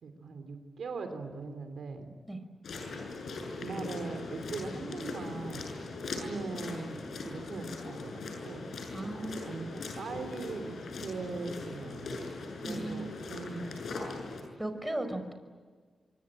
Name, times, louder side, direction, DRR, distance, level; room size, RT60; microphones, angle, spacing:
voice 1, 0.0-2.1 3.5-5.7 6.2-8.7 9.0-9.2 9.5-14.1, right 4 dB, 80° right, 7 dB, 3.3 m, -41 dB
sound 1, 2.6-14.4, left 3 dB, 75° left, 7.4 m, -40 dB
voice 2, 8.9-9.5 12.6-13.2 14.6-15.3, right 1 dB, 10° right, 7 dB, 5.2 m, -36 dB
25.0 x 24.5 x 9.0 m, 1.5 s
cardioid pair, 50°, 0 cm